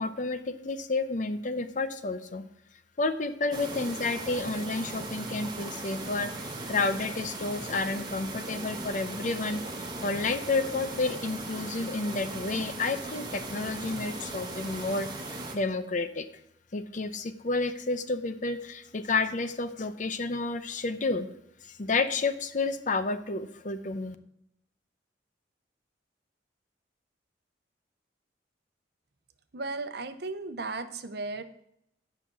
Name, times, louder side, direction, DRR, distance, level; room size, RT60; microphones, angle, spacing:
voice 1, 0.0-2.4 3.0-16.3 16.7-21.3 21.7-24.2, left 3 dB, 45° left, 10 dB, 0.7 m, -30 dB
sound 1, 3.5-15.6, right 2 dB, 25° right, 1.3 m, -38 dB
voice 2, 29.5-31.4, right 3 dB, 60° right, 10 dB, 0.8 m, -35 dB
9.6 x 5.8 x 6.1 m, 0.74 s
head